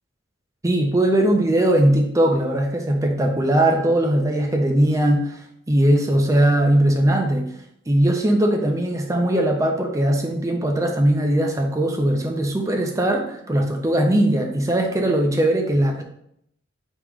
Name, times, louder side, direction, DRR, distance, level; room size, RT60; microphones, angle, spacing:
voice 1, 0.6-5.4 5.7-7.5 7.9-16.0, right 1 dB, 15° right, 3 dB, 0.5 m, -20 dB
3.6 x 3.0 x 4.8 m, 0.71 s
head